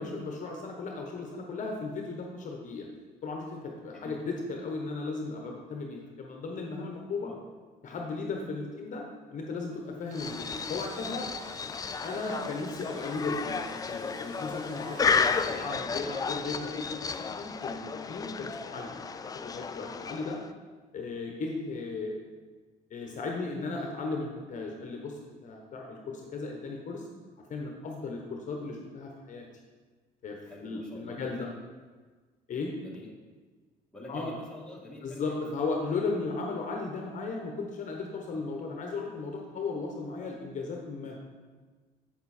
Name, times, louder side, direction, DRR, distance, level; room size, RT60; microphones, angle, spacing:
voice 1, 0.0-2.9 3.2-7.3 7.8-9.0 9.3-11.3 12.0-18.9 19.4-20.4 20.9-22.2 22.9-27.1 27.5-29.4 30.2-31.5 32.5-32.7 34.1-34.4 35.0-41.2, left 3 dB, 45° left, 1 dB, 1.2 m, -36 dB
Engine / Drill, 9.9-16.1, right 2 dB, 55° right, 1.4 m, -53 dB
sound 1, 10.1-20.5, left 5 dB, 20° left, 0.4 m, -33 dB
voice 2, 15.4-15.7 30.4-31.5 32.7-33.1 33.9-35.7 38.3-38.4, left 2 dB, 5° left, -4 dB, 1.9 m, -47 dB
7.7 x 6.9 x 4.4 m, 1.4 s
cardioid pair, 110°, 17 cm